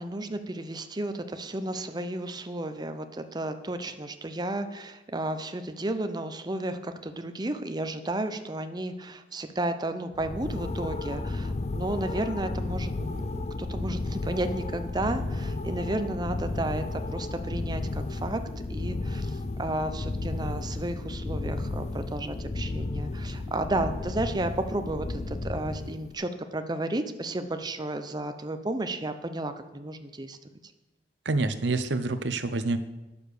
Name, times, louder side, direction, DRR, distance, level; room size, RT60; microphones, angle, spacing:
voice 1, 0.0-18.4 18.7-30.4, right 1 dB, 25° right, 8 dB, 0.7 m, -33 dB
sound 1, 10.1-26.1, left 2 dB, 40° left, 0.5 m, -33 dB
voice 2, 31.2-32.8, right 3 dB, 90° right, 11 dB, 0.8 m, -27 dB
10.0 x 7.0 x 6.6 m, 1.1 s
head